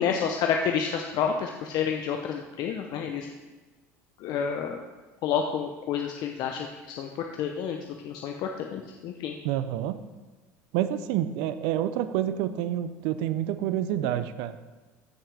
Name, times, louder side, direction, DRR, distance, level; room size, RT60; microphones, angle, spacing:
voice 1, 0.0-3.3 4.2-4.8 5.2-7.8 8.0-9.3, left 7 dB, 60° left, 3 dB, 0.8 m, -29 dB
voice 2, 9.4-10.0 10.7-14.6, right 11 dB, 75° right, 13 dB, 0.5 m, -28 dB
15.0 x 5.8 x 3.5 m, 1.3 s
hypercardioid pair, 75°, 8 cm